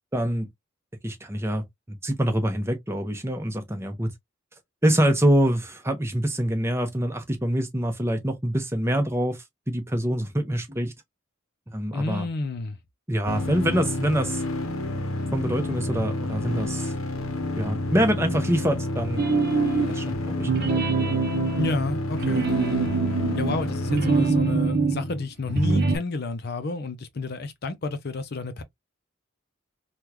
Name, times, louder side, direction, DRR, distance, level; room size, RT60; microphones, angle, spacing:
voice 1, 0.1-0.5 1.0-4.1 4.8-9.4 9.7-10.9 11.7-12.2 13.1-14.4 15.3-16.9 17.6-19.2 19.9-20.5, right 1 dB, 10° right, 0.9 m, -25 dB
voice 2, 11.9-12.8 21.6-22.9 23.4-28.6, left 3 dB, 50° left, 0.5 m, -30 dB
sound 1, 13.3-25.2, left 2 dB, 90° left, 0.8 m, -29 dB
sound 2, 19.2-20.0 20.4-25.1 25.5-26.0, right 4 dB, 50° right, 0.7 m, -24 dB
3.6 x 2.3 x 2.9 m
head